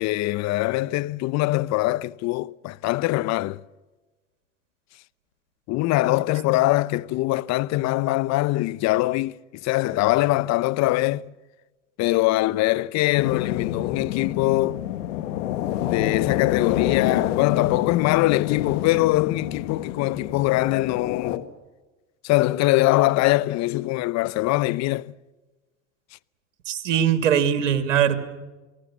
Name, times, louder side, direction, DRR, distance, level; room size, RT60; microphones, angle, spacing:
voice 1, 0.0-3.6 5.7-11.3 12.0-14.8 15.8-21.5 22.2-25.1, left 18 dB, 45° left, 0.8 m, -22 dB
sound 1, 13.2-21.4, left 12 dB, 75° left, 1.8 m, -28 dB
voice 2, 26.7-28.2, right 9 dB, 90° right, 2.5 m, -21 dB
29.0 x 19.0 x 7.3 m
hypercardioid pair, 100°, 37 cm